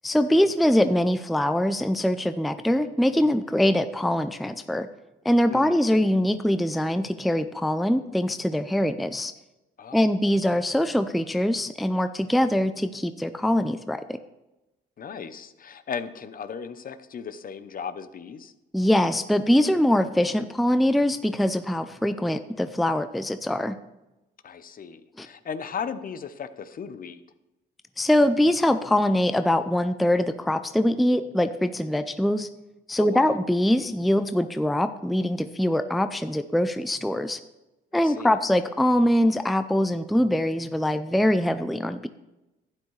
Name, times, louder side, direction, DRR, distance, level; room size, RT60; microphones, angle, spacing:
voice 1, 0.0-4.9 5.2-9.3 9.9-14.2 18.7-23.8 25.2-25.3 28.0-32.5 32.9-37.4 37.9-42.1, left 1 dB, ahead, 10 dB, 0.4 m, -23 dB
voice 2, 5.5-5.8 9.8-10.3 15.0-18.5 24.4-27.2 33.0-33.4 38.0-38.3, left 6 dB, 45° left, 12 dB, 0.7 m, -36 dB
11.5 x 9.5 x 3.2 m, 0.98 s
cardioid pair, 90°, 20 cm